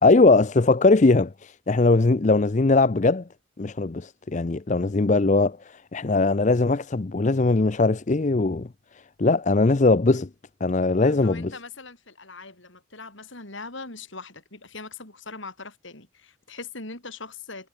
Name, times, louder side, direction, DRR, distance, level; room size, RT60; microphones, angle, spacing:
voice 1, 0.0-3.2 3.6-8.7 9.2-10.3 10.6-11.5, left 3 dB, 35° left, 0.5 m, -20 dB
voice 2, 11.0-17.7, left 3 dB, 65° left, 5.1 m, -41 dB
head